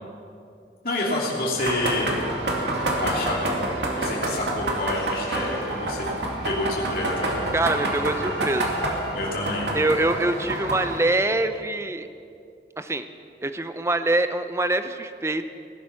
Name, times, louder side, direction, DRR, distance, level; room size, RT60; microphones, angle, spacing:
voice 1, 0.8-2.2 3.0-3.5 4.0-6.1 6.4-7.5 9.1-9.7, left 2 dB, 55° left, -5 dB, 2.9 m, -28 dB
sound 1, 1.6-11.0, right 1 dB, 85° right, 2.3 m, -28 dB
voice 2, 7.5-8.7 9.7-12.1 12.8-13.0 13.4-15.5, right 2 dB, 15° right, 10 dB, 0.5 m, -24 dB
18.5 x 11.0 x 5.8 m, 2.5 s
head